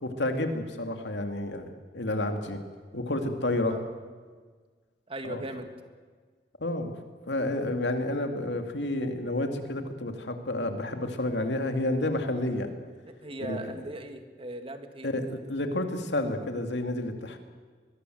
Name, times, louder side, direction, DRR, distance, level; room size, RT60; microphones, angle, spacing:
voice 1, 0.0-2.6 2.9-3.8 5.2-5.4 6.6-6.9 7.3-12.7 13.4-13.6 15.0-17.4, left 1 dB, 85° left, 6 dB, 2.5 m, -30 dB
voice 2, 5.1-5.7 13.2-15.1, right 1 dB, 35° right, 7 dB, 2.0 m, -38 dB
24.0 x 21.5 x 7.9 m, 1.6 s
head